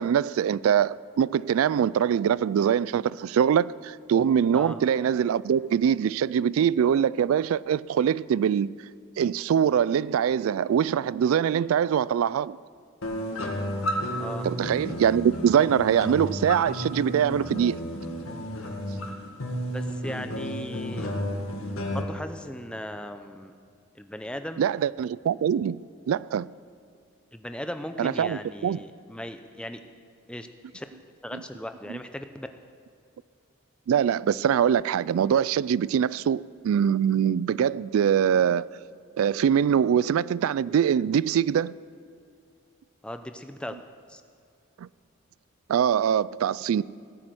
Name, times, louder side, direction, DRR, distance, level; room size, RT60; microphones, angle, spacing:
voice 1, 0.0-8.7 9.2-12.6 14.4-17.8 24.6-26.5 28.0-28.8 31.3-31.4 31.9-32.0 33.9-38.6 39.2-41.7 44.8-44.9 45.7-46.8, right 8 dB, 80° right, 0.3 m, -23 dB
sound 1, 13.0-22.0, equal, 90° left, 2.1 m, -32 dB
voice 2, 19.7-21.1 21.9-23.5 24.0-24.6 27.3-29.8 30.3-30.5 30.7-30.8 31.2-32.5 43.0-43.8 44.1-44.2, left 1 dB, 5° left, 0.6 m, -37 dB
17.0 x 9.8 x 7.7 m
head